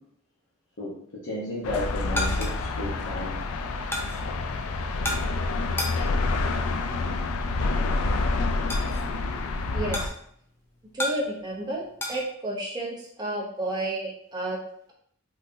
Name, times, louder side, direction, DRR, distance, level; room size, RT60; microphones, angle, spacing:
voice 1, 0.8-3.4, left 1 dB, 55° left, -7 dB, 0.8 m, -33 dB
sound 1, 1.6-10.1, left 3 dB, 80° left, 0.4 m, -28 dB
sound 2, 1.6-12.2, left 1 dB, 10° left, 0.5 m, -37 dB
voice 2, 9.7-10.1 10.9-11.8 12.1-14.6, right 1 dB, 20° right, -4 dB, 0.7 m, -31 dB
3.7 x 2.7 x 2.6 m, 0.67 s
head